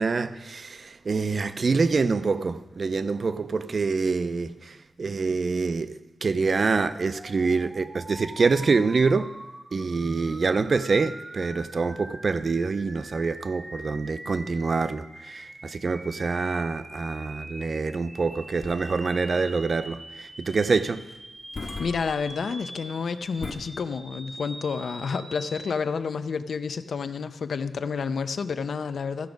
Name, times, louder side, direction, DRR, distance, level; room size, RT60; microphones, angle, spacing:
voice 1, 0.0-9.3 9.7-21.0, right 4 dB, 45° right, 0.4 m, -26 dB
sound 1, 6.7-25.7, right 1 dB, 20° right, 0.8 m, -44 dB
sound 2, 12.9-23.5, left 3 dB, 45° left, 0.8 m, -44 dB
voice 2, 21.8-29.3, left 5 dB, 70° left, 0.4 m, -30 dB
14.0 x 5.9 x 5.2 m
wide cardioid pair, 110°, 0 cm